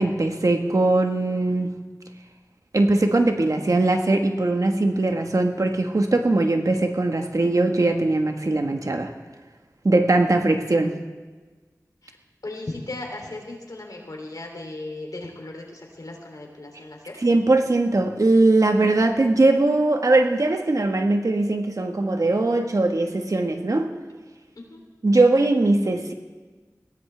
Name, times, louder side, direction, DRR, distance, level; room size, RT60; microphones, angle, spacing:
voice 1, 0.0-1.7 2.7-9.1 9.8-10.9 17.2-23.9 25.0-26.1, right 2 dB, 65° right, 5 dB, 1.4 m, -20 dB
voice 2, 12.4-17.2 24.5-24.8, left 2 dB, 80° left, 1 dB, 3.1 m, -37 dB
21.5 x 16.5 x 3.4 m, 1.4 s
wide cardioid pair, 50°, 6 cm